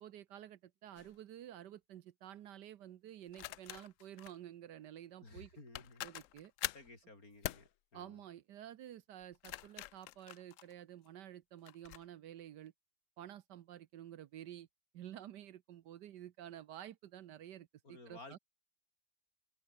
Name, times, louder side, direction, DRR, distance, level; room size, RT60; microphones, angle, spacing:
voice 1, 0.0-5.5 6.0-6.5 7.9-12.7 13.2-14.7 14.9-18.4, right 11 dB, 75° right, 1.4 m, -51 dB
sound 1, 1.0-1.2 3.3-4.4 5.4-5.5 5.7-6.9 7.4-7.7 9.2-11.1 11.7-12.0, left 14 dB, 85° left, 0.6 m, -44 dB
voice 2, 5.2-6.1 6.6-8.2 17.8-18.4, left 2 dB, 50° left, 5.7 m, -55 dB
open air
omnidirectional pair, 1.9 m